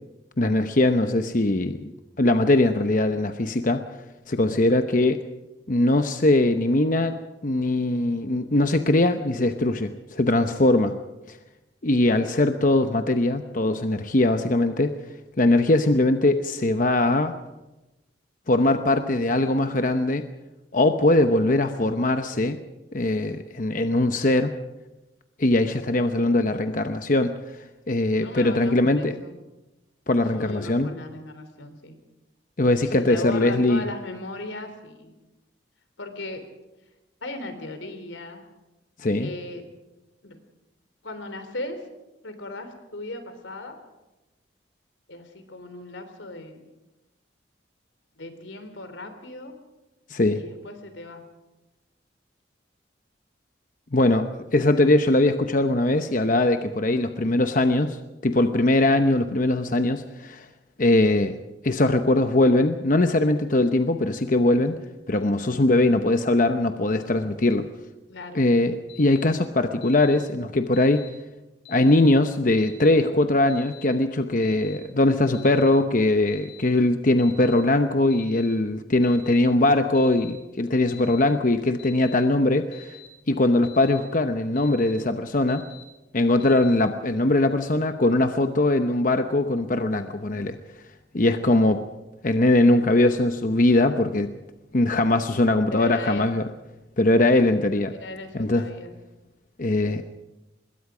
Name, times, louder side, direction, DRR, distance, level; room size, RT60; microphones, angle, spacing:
voice 1, 0.4-1.9 2.2-3.8 4.3-5.2 5.7-7.2 7.4-10.9 11.3-11.4 11.8-14.9 15.4-17.3 18.5-20.3 20.7-22.6 22.9-24.5 25.4-29.2 30.1-30.9 32.6-33.8 39.0-39.3 50.1-50.4 53.9-60.5 60.8-61.4 61.6-64.8 65.1-67.7 68.3-71.1 71.7-83.0 83.3-85.6 86.1-90.6 91.1-91.8 92.2-94.3 94.7-96.5 97.0-97.9 98.3-98.7 99.6-100.0, left 2 dB, 45° left, 7 dB, 0.9 m, -21 dB
voice 2, 28.2-29.4 30.3-32.0 32.9-35.1 36.0-36.4 37.2-38.4 39.2-39.6 40.2-40.4 41.0-41.8 42.2-43.8 45.1-46.6 48.1-49.6 50.3-51.2 68.1-68.4 95.7-96.3 97.9-98.9, left 2 dB, 85° left, 8 dB, 3.5 m, -37 dB
Alarm, 68.9-69.2 69.8-70.2 70.7-71.1 71.6-72.0 72.6-72.9 73.5-73.8 74.4-74.8 75.3-75.7 76.3-76.6 77.2-77.5 78.1-78.5 79.0-79.4 79.9-80.3 80.9-81.2 81.8-82.1 82.7-83.1 83.6-84.0 84.5-84.9 85.5-85.8 86.4-86.8, left 11 dB, 70° left, 5.9 m, -46 dB
25.5 x 21.5 x 5.0 m, 1.0 s
head